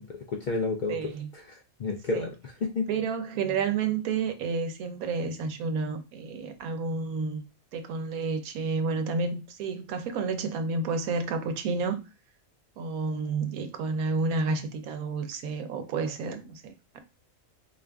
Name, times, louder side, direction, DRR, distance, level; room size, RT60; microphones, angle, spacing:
voice 1, 0.0-2.9, left 3 dB, 75° left, 0.4 m, -32 dB
voice 2, 0.9-1.3 2.1-2.3 2.9-7.4 7.7-12.0 12.8-17.0, right 4 dB, 90° right, 1.1 m, -30 dB
4.3 x 2.4 x 3.4 m
omnidirectional pair, 1.5 m